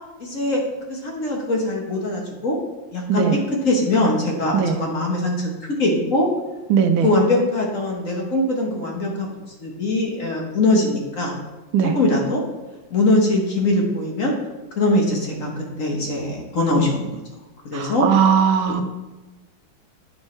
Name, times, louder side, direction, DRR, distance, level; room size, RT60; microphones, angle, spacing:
voice 1, 0.2-0.6 0.9-2.6 2.9-3.2 3.6-6.3 7.0-9.3 9.6-11.3 11.9-12.4 12.9-14.3 14.8-17.2 17.6-18.0, left 2 dB, 45° left, 0 dB, 1.3 m, -21 dB
voice 2, 3.1-3.4 4.5-4.8 6.7-7.1 11.7-12.0 16.8-16.9 17.7-18.8, right 7 dB, 90° right, 7 dB, 1.5 m, -19 dB
9.6 x 5.4 x 3.2 m, 1.1 s
omnidirectional pair, 2.2 m